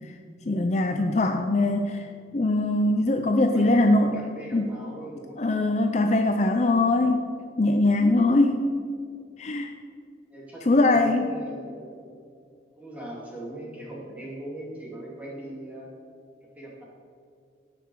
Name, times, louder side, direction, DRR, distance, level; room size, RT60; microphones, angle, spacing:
voice 1, 0.5-4.2 4.5-4.7 5.4-7.3 7.6-8.7 9.4-9.7 10.7-11.4, left 2 dB, 40° left, 5 dB, 0.5 m, -22 dB
voice 2, 3.5-5.4 10.3-12.1 12.8-15.9 16.6-16.8, right 1 dB, 10° right, -5 dB, 2.6 m, -40 dB
17.5 x 5.9 x 4.7 m, 2.3 s
head